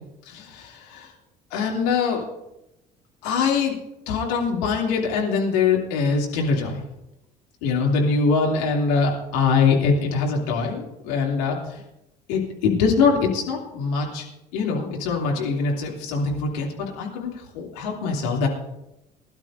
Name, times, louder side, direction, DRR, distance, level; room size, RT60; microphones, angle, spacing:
voice 1, 0.3-1.1 1.5-2.2 3.2-3.7 4.1-6.8 7.6-11.8 12.3-14.2 14.5-18.5, left 5 dB, 75° left, -1 dB, 2.8 m, -23 dB
21.0 x 12.0 x 2.6 m, 0.91 s
hypercardioid pair, 60°, 21 cm